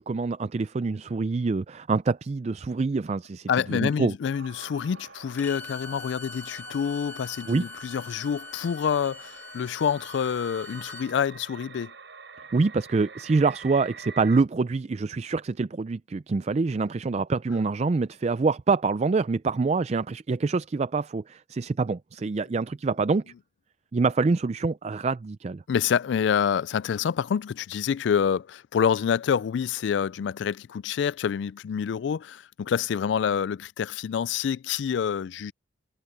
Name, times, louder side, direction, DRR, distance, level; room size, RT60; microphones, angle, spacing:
voice 1, 0.0-4.1 7.5-7.6 12.5-23.2 23.9-25.6, right 4 dB, 35° right, 0.4 m, -26 dB
voice 2, 3.5-11.9 25.7-35.5, left 7 dB, 70° left, 0.3 m, -27 dB
sound 1, 4.3-14.4, right 5 dB, 75° right, 4.4 m, -46 dB
Bowed string instrument, 5.4-11.1, left 4 dB, 10° left, 2.2 m, -43 dB
head